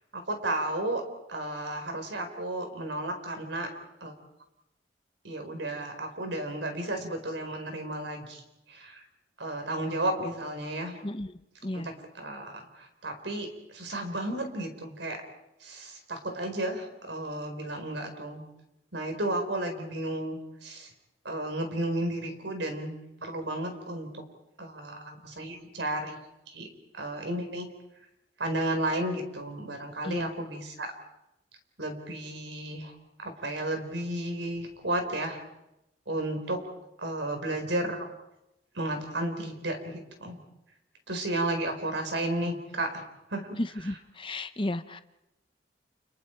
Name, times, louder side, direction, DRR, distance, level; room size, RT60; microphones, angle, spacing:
voice 1, 0.1-3.7 4.0-4.1 5.2-8.4 8.7-9.0 9.4-11.0 11.7-11.8 12.2-15.2 15.6-18.5 18.9-20.9 21.2-24.1 24.6-26.2 26.5-26.7 26.9-27.7 28.4-30.9 31.8-32.9 33.2-35.4 36.1-36.6 37.0-38.1 38.7-40.4 41.1-43.0 43.3-43.6, right 1 dB, 80° right, 5 dB, 4.5 m, -33 dB
voice 2, 11.0-11.9 30.0-30.3 43.6-45.0, left 1 dB, 30° left, 10 dB, 1.0 m, -34 dB
30.0 x 29.0 x 4.6 m, 0.89 s
head